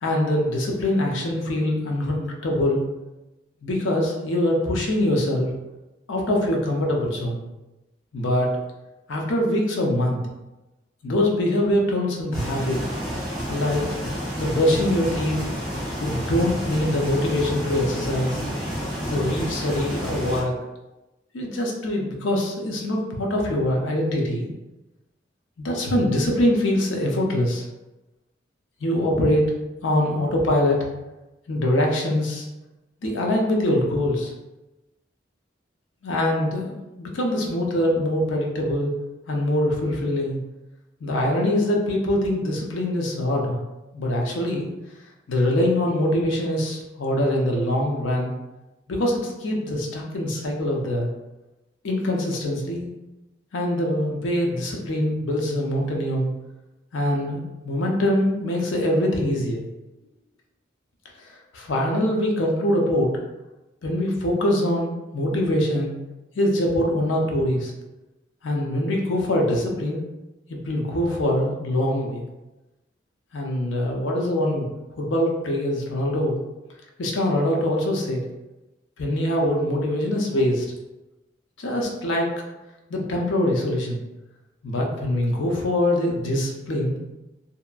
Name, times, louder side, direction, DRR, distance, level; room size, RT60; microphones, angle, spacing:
voice 1, 0.0-2.8 3.6-5.5 6.1-7.4 8.1-8.5 9.1-10.2 11.0-12.8 13.5-13.8 14.4-15.4 16.0-18.4 19.1-20.5 21.3-24.5 25.6-27.6 28.8-29.4 29.8-30.9 31.5-32.5 33.0-34.3 36.0-38.9 39.3-40.4 41.0-43.6 43.9-44.7 45.3-48.3 48.9-51.1 51.8-52.9 53.5-56.3 56.9-59.7 61.5-63.1 63.8-65.9 66.4-67.7 68.4-70.0 70.5-72.2 73.3-74.7 75.0-76.4 77.0-78.2 79.0-80.7 81.6-82.3 82.9-84.0 84.6-87.0, left 1 dB, 85° left, 0 dB, 0.5 m, -23 dB
sound 1, 12.3-20.4, equal, ahead, 1.0 m, -30 dB
2.8 x 2.2 x 2.4 m, 1.0 s
head